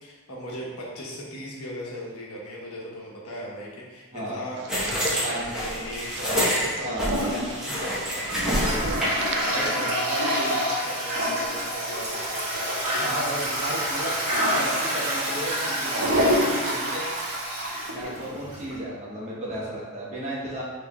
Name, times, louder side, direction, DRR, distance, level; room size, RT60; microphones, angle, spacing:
voice 1, 0.0-4.6 5.1-8.3 9.3-13.0, equal, 70° left, -4 dB, 1.0 m, -38 dB
sound 1, 4.5-9.7, right 5 dB, 50° right, 0.3 m, -41 dB
sound 2, 4.7-9.3, equal, 5° right, 0.9 m, -27 dB
Toilet flush, 7.0-18.8, equal, 90° right, 1.4 m, -27 dB
voice 2, 8.6-9.0 9.5-9.7 13.0-14.2 14.5-17.1 17.9-20.6, right 1 dB, 30° right, -6 dB, 1.0 m, -34 dB
6.1 x 3.3 x 2.3 m, 1.3 s
head